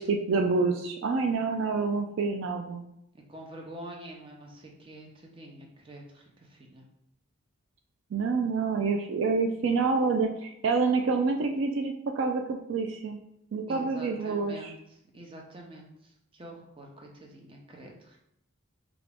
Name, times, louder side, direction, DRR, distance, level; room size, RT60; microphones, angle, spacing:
voice 1, 0.0-2.8 8.1-13.2 13.5-14.7, right 4 dB, 65° right, 4 dB, 0.3 m, -27 dB
voice 2, 3.1-6.9 13.7-18.2, right 1 dB, 25° right, 0 dB, 0.6 m, -46 dB
4.9 x 2.5 x 3.4 m, 0.79 s
head